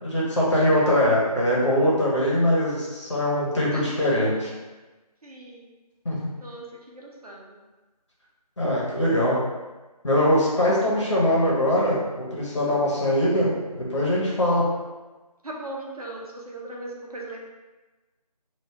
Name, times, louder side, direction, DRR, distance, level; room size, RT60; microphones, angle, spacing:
voice 1, 0.0-4.5 6.0-6.2 8.6-9.4 10.0-12.0 12.3-13.5 13.9-14.6, left 1 dB, 45° left, -6 dB, 1.1 m, -22 dB
voice 2, 5.2-5.6 6.4-7.5 15.4-17.4, right 2 dB, 65° right, -3 dB, 1.0 m, -38 dB
3.4 x 2.7 x 3.4 m, 1.2 s
figure-of-eight pair, 170°, 21 cm